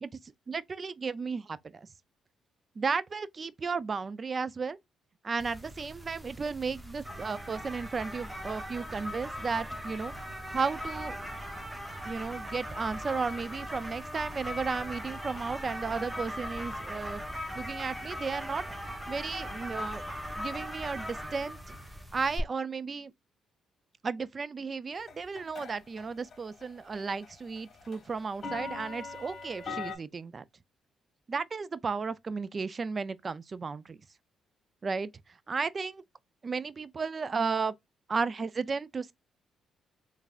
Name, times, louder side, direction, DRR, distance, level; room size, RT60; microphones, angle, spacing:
voice 1, 0.0-1.9 2.8-4.8 5.2-10.1 10.5-11.3 12.0-17.2 17.5-18.6 19.1-20.0 20.4-21.8 22.1-23.1 24.0-30.4 31.3-34.0 34.8-35.1 35.5-36.0 36.4-37.7 38.1-39.1, right 5 dB, 35° right, 0.4 m, -34 dB
sound 1, 5.4-22.4, equal, 10° right, 0.8 m, -39 dB
sound 2, 25.1-26.0 26.3-26.6 26.9-30.0, left 4 dB, 45° left, 1.9 m, -40 dB
3.5 x 3.2 x 2.3 m
cardioid pair, 90°, 0 cm